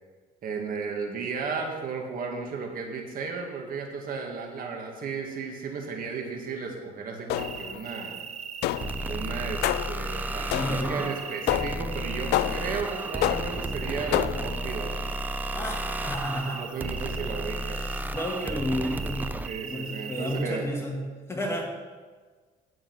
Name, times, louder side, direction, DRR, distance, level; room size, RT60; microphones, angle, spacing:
voice 1, 0.4-8.2 9.1-14.9 16.5-18.0 19.4-20.7, right 5 dB, 60° right, 2 dB, 1.9 m, -34 dB
sound 1, 7.3-7.8 8.6-9.1 9.6-10.0 10.5-11.0 11.5-11.9 12.3-12.8 13.2-13.7 14.1-14.6, left 14 dB, 80° left, 0.4 m, -28 dB
sound 2, 7.4-20.4, right 7 dB, 40° right, 0.9 m, -40 dB
sound 3, 8.8-19.5, right 1 dB, 10° right, 0.5 m, -33 dB
voice 2, 10.5-11.0 15.5-16.6 17.7-21.6, equal, 15° left, 0 dB, 2.1 m, -32 dB
9.8 x 7.7 x 6.1 m, 1.4 s
cardioid pair, 110°, 17 cm